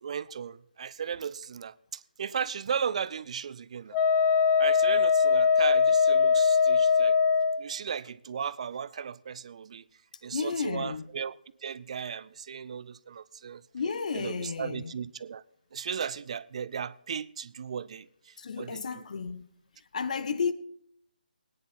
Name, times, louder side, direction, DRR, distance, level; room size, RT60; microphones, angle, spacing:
voice 1, 0.0-4.0 4.6-7.1 7.6-9.8 10.2-11.4 11.6-13.6 14.1-15.4 15.7-18.1 18.6-19.0, right 7 dB, 40° right, 0.4 m, -36 dB
Wind instrument woodwind instrument, 3.9-7.6, left 6 dB, 20° left, 0.5 m, -22 dB
voice 2, 10.3-11.1 13.7-14.9 18.4-19.5 19.9-20.5, left 5 dB, 50° left, 0.9 m, -32 dB
18.5 x 9.9 x 4.3 m
figure-of-eight pair, 150°, 5 cm